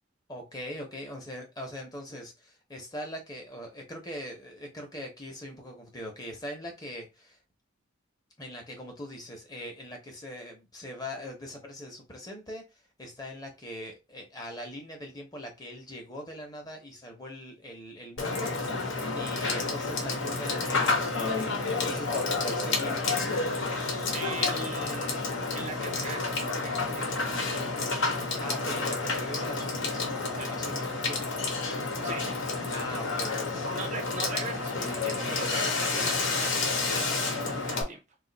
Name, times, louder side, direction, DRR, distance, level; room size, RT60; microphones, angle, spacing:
voice 1, 0.3-7.4 8.4-12.6 13.0-18.9 19.1-23.0 28.1-31.4 32.7-33.7, left 1 dB, 20° left, 0.8 m, -41 dB
Water / Water tap faucet / Sink (filling or washing), 18.2-37.8, left 3 dB, 70° left, 0.9 m, -30 dB
voice 2, 24.1-27.6 30.4-30.5 32.0-32.3 33.7-38.0, right 3 dB, 40° right, 0.5 m, -40 dB
2.5 x 2.4 x 3.9 m
head